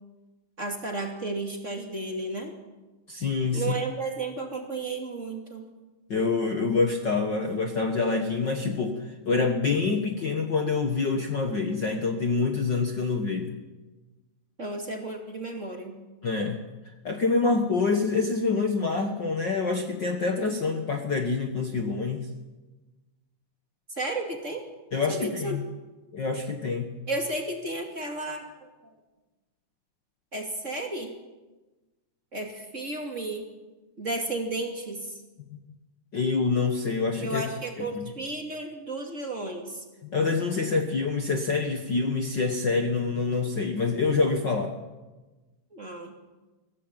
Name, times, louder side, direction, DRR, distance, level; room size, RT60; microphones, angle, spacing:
voice 1, 0.6-2.5 3.5-5.7 14.6-16.0 23.9-24.6 25.1-25.6 27.1-28.5 30.3-31.2 32.3-33.5 34.0-35.1 37.2-39.8 45.7-46.1, right 2 dB, 25° right, 2 dB, 2.6 m, -33 dB
voice 2, 3.1-3.6 6.1-13.6 16.2-16.6 17.0-22.3 24.9-25.6 26.1-26.9 35.5-35.6 36.1-37.4 37.8-38.0 40.0-44.7, left 4 dB, 45° left, 4 dB, 1.7 m, -26 dB
23.0 x 16.0 x 9.0 m, 1.2 s
omnidirectional pair, 3.4 m